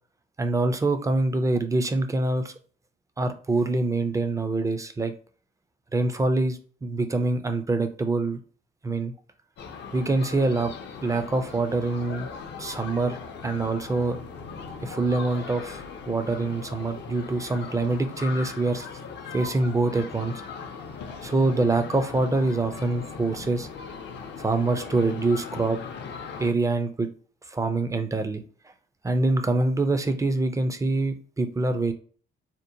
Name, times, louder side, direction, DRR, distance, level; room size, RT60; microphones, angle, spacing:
voice 1, 0.4-2.5 3.2-5.1 5.9-8.4 8.8-9.1 9.9-10.7 11.0-12.3 12.6-13.2 13.4-14.2 14.8-18.9 19.3-20.3 21.2-23.7 24.4-25.8 26.4-27.1 27.5-28.4 29.0-31.9, right 2 dB, 15° right, 0.4 m, -25 dB
sound 1, 9.6-26.5, left 5 dB, 65° left, 0.5 m, -39 dB
2.8 x 2.0 x 2.6 m
cardioid pair, 90°, 20 cm